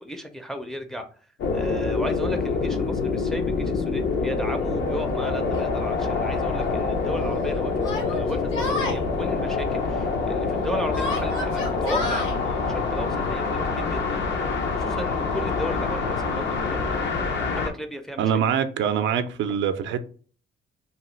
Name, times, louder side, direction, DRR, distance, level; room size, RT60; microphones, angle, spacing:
voice 1, 0.0-1.1 1.5-14.2 14.7-17.0 17.6-18.2, equal, ahead, 0.4 m, -35 dB
sound 1, 1.4-17.7, left 4 dB, 65° left, 0.6 m, -26 dB
Yell, 5.5-5.6 6.6-6.7 7.8-9.0 10.9-12.3, left 2 dB, 80° left, 1.1 m, -30 dB
voice 2, 18.2-20.0, right 8 dB, 70° right, 0.4 m, -24 dB
2.8 x 2.3 x 3.1 m
cardioid pair, 90°, 20 cm